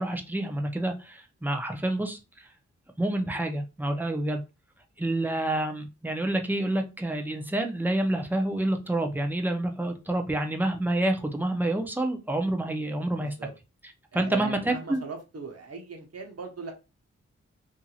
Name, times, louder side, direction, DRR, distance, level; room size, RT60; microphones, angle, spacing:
voice 1, 0.0-2.5 3.0-4.4 5.0-13.3 14.1-15.0, right 1 dB, 5° right, 4 dB, 0.6 m, -28 dB
voice 2, 13.2-13.5 14.1-16.7, right 4 dB, 55° right, 3 dB, 1.0 m, -40 dB
2.7 x 2.7 x 2.4 m, 0.27 s
cardioid pair, 45°, 30 cm